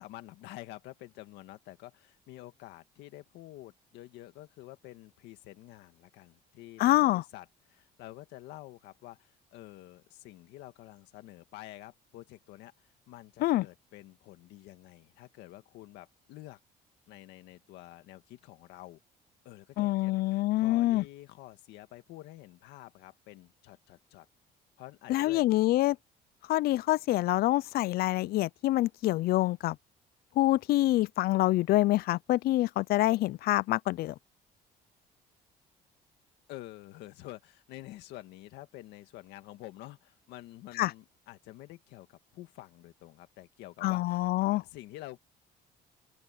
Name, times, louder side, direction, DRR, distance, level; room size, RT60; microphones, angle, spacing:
voice 1, 0.0-16.6 17.1-19.0 19.4-24.3 24.8-25.5 36.5-44.3 44.5-45.2, left 16 dB, 90° left, 1.9 m, -49 dB
voice 2, 6.8-7.2 13.4-13.7 19.8-21.0 25.1-26.0 26.5-29.8 30.4-34.1 40.8-40.9 43.8-44.6, left 16 dB, 65° left, 0.4 m, -26 dB
open air
cardioid pair, 110°, 17 cm